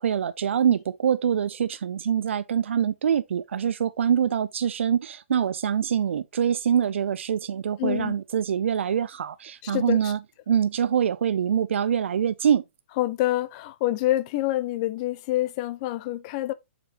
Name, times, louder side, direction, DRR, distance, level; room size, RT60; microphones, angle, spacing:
voice 1, 0.0-10.2 10.5-12.6, right 8 dB, 75° right, 0.5 m, -24 dB
voice 2, 7.8-8.1 9.6-10.1 13.0-16.5, left 15 dB, 35° left, 0.7 m, -27 dB
7.1 x 5.2 x 2.9 m
hypercardioid pair, 150°, 7 cm